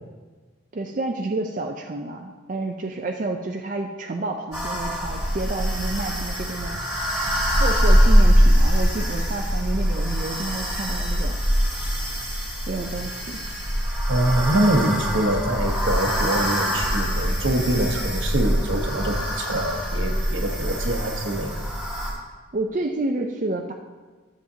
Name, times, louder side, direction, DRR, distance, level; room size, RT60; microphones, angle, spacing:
voice 1, 0.7-6.8 7.6-11.4 12.7-13.4 22.5-23.7, right 2 dB, 40° right, 2 dB, 0.4 m, -29 dB
sound 1, 4.5-22.1, equal, 5° right, 2.4 m, -23 dB
voice 2, 14.1-21.5, right 1 dB, 75° right, 4 dB, 1.0 m, -24 dB
13.0 x 7.3 x 2.8 m, 1.4 s
head